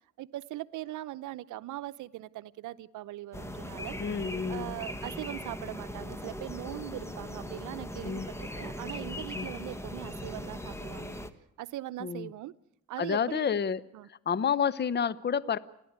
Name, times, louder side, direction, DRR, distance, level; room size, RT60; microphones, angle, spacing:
voice 1, 0.2-4.0 4.5-11.1 11.6-12.5 12.9-13.5 13.9-14.1, right 15 dB, 80° right, 15 dB, 0.8 m, -40 dB
sound 1, 3.3-11.3, left 1 dB, 10° left, 1.4 m, -39 dB
voice 2, 4.0-4.7 8.0-8.3 9.3-9.5 12.0-12.3 13.0-13.8 14.1-15.6, left 7 dB, 35° left, 17 dB, 0.9 m, -29 dB
29.5 x 12.0 x 9.5 m, 0.79 s
cardioid pair, 90°, 30 cm